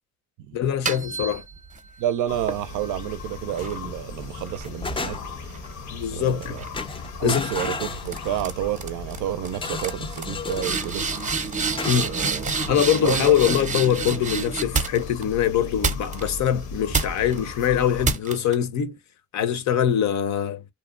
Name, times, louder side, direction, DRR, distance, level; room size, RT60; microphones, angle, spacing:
voice 1, 0.5-1.4 5.9-6.6 6.9-7.7 11.9-12.1 12.7-19.0 19.3-20.6, left 9 dB, 65° left, 0.6 m, -23 dB
sound 1, 0.6-1.9 2.5-6.0 6.4-6.8 7.6-7.8 8.0-8.5 8.8-9.2 9.4-9.5 9.8-15.2 15.8-16.5 16.9-17.4 18.0-18.5, right 5 dB, 25° right, 0.6 m, -29 dB
voice 2, 2.0-5.2 6.1-6.6 7.2-11.1 12.0-12.5 12.8-13.3, right 12 dB, 80° right, 0.5 m, -30 dB
sound 2, 2.3-18.1, left 3 dB, 90° left, 0.9 m, -37 dB
sound 3, 3.6-4.0 4.4-5.5 6.3-6.5 6.7-8.6 9.5-10.9 11.8-12.8, left 4 dB, 20° left, 0.4 m, -33 dB
2.7 x 2.1 x 2.4 m
cardioid pair, 90°, 30 cm